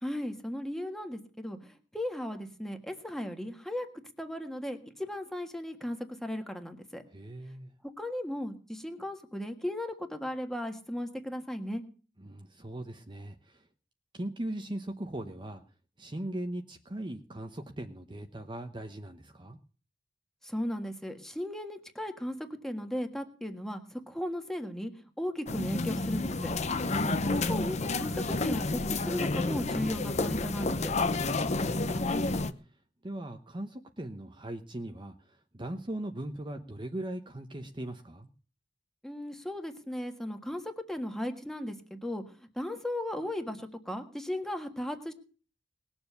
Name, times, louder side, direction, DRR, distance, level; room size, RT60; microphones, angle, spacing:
voice 1, 0.0-3.9 4.2-7.0 8.0-11.8 20.4-22.4 22.6-24.9 25.2-26.5 27.0-30.9 39.0-42.2 42.5-45.1, left 1 dB, 5° left, 6 dB, 1.6 m, -36 dB
voice 2, 7.1-7.7 12.2-13.7 14.1-15.6 16.0-19.6 26.8-27.2 31.2-32.5 33.0-38.3, right 1 dB, 25° right, 5 dB, 1.0 m, -39 dB
sound 1, 25.5-32.5, left 3 dB, 40° left, 0.8 m, -30 dB
19.5 x 7.2 x 6.7 m, 0.39 s
head